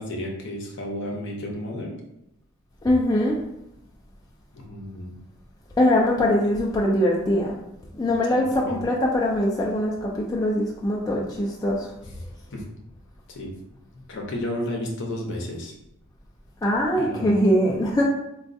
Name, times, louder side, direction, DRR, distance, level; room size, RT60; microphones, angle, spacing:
voice 1, 0.0-2.0 4.5-5.1 8.3-8.8 12.5-12.6 13.3-13.5 14.1-15.7 17.0-17.4, left 1 dB, 60° left, 0 dB, 0.7 m, -32 dB
voice 2, 2.8-3.4 5.8-7.5 7.9-11.9 16.6-18.0, left 1 dB, 15° left, -3 dB, 0.3 m, -22 dB
4.3 x 2.3 x 2.6 m, 0.84 s
head